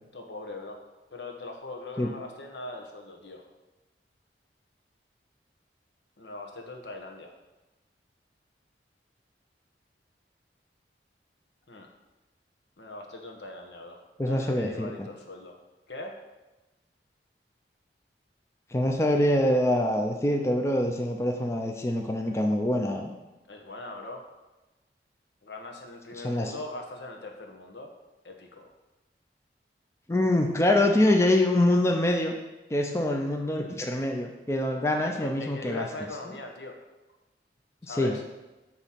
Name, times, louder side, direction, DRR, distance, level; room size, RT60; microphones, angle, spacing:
voice 1, 0.1-0.8 1.1-3.5 6.2-7.3 11.7-11.9 12.8-14.0 14.3-15.6 15.9-16.2 23.5-24.2 25.4-27.9 28.2-28.7 35.0-36.8 37.8-38.2, left 2 dB, 75° left, 2 dB, 1.0 m, -40 dB
voice 2, 14.2-15.1 18.7-23.1 26.2-26.5 30.1-32.3 32.7-35.9 37.9-38.1, left 1 dB, 15° left, 2 dB, 0.5 m, -25 dB
7.8 x 3.0 x 5.8 m, 1.1 s
head